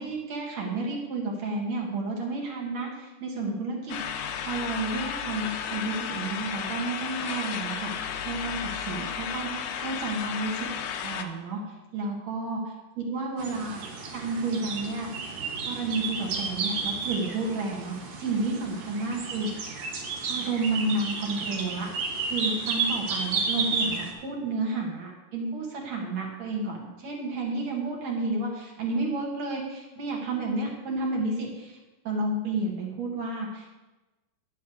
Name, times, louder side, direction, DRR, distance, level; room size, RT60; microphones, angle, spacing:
voice 1, 0.0-4.0 4.4-10.7 11.0-11.6 11.9-12.6 13.0-13.8 14.1-15.1 15.7-19.7 20.3-31.8 32.0-33.8, right 2 dB, 60° right, -1 dB, 2.9 m, -31 dB
sound 1, 3.9-11.2, left 8 dB, 80° left, 2.3 m, -33 dB
sound 2, 13.4-24.1, right 4 dB, 85° right, 3.1 m, -32 dB
10.5 x 9.5 x 4.7 m, 1.1 s
omnidirectional pair, 3.7 m